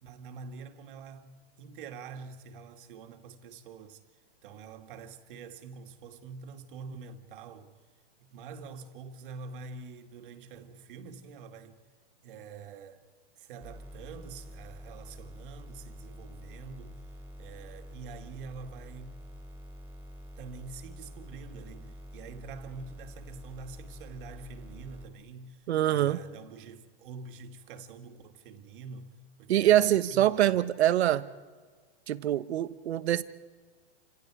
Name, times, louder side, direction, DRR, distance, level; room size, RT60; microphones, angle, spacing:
voice 1, 0.0-4.0 4.4-7.7 8.2-11.8 12.2-13.0 13.4-17.0 17.4-19.2 20.4-29.1 29.4-30.6, right 5 dB, 50° right, 2.2 m, -46 dB
sound 1, 13.6-25.0, equal, 5° right, 2.9 m, -47 dB
voice 2, 25.7-26.2 29.5-31.3 32.1-33.2, right 12 dB, 75° right, 1.2 m, -24 dB
30.0 x 26.5 x 4.9 m
supercardioid pair, 160°, 33 cm